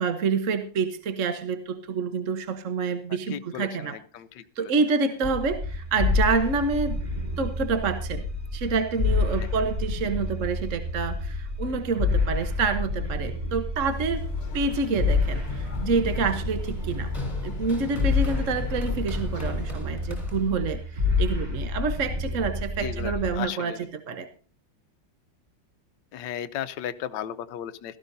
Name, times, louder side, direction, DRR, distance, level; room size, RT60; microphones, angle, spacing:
voice 1, 0.0-4.0 4.6-7.0 7.4-8.3 8.5-14.3 14.5-17.1 17.4-24.3, right 4 dB, 45° right, 8 dB, 1.2 m, -27 dB
voice 2, 3.3-4.7 9.4-9.6 22.8-23.9 26.1-28.0, left 10 dB, 70° left, 11 dB, 1.4 m, -35 dB
sound 1, 5.2-23.4, left 3 dB, 20° right, 2.0 m, -29 dB
sound 2, 13.9-19.8, left 1 dB, 35° left, 1.6 m, -39 dB
Run, 14.4-20.8, left 3 dB, 5° left, 3.1 m, -40 dB
17.0 x 14.0 x 2.7 m, 0.40 s
omnidirectional pair, 2.1 m